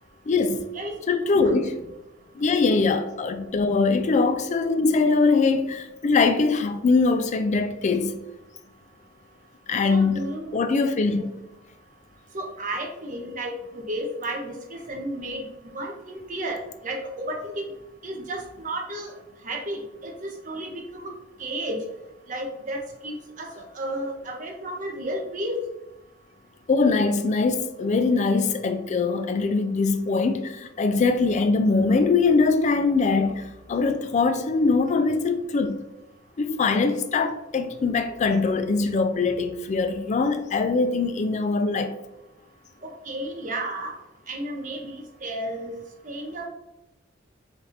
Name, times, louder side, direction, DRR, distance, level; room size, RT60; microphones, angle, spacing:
voice 1, 0.3-0.6 1.1-1.8 2.3-8.1 9.7-11.3 26.7-35.8 36.4-42.0, left 4 dB, 40° left, 0.3 m, -22 dB
voice 2, 1.2-1.5 9.9-10.6 11.2-11.3 12.3-17.6 18.0-19.2 19.4-21.1 21.4-21.8 22.3-25.6 42.8-43.9 44.3-45.7 46.0-46.5, right 1 dB, 40° right, 0.8 m, -33 dB
3.3 x 2.5 x 4.1 m
head